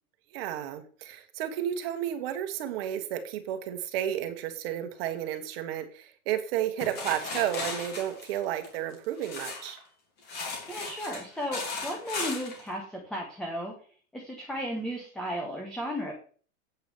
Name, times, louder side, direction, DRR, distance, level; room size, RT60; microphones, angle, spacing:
voice 1, 0.3-9.8, right 11 dB, 45° right, 8 dB, 1.3 m, -32 dB
sound 1, 6.8-9.8 10.2-12.6, left 3 dB, 25° left, 2.2 m, -36 dB
voice 2, 10.7-13.7 14.1-16.1, equal, ahead, 1 dB, 0.7 m, -34 dB
8.1 x 4.7 x 7.0 m, 0.42 s
supercardioid pair, 170°, 42 cm